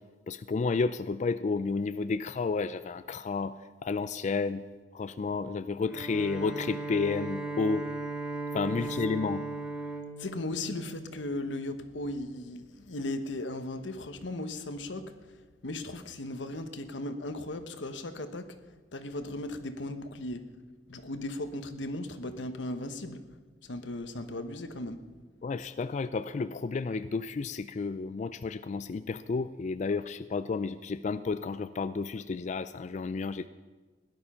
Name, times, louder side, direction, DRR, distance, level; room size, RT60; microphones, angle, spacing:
voice 1, 0.3-4.6 4.9-7.8 8.5-9.4 25.4-33.5, left 4 dB, 40° left, 13 dB, 0.3 m, -31 dB
Bowed string instrument, 5.8-11.5, right 2 dB, 5° right, 1.3 m, -37 dB
voice 2, 10.2-18.6 18.9-20.5 20.9-23.2 23.6-25.0, left 1 dB, 85° left, 9 dB, 1.1 m, -37 dB
17.0 x 11.0 x 5.6 m, 1.4 s
head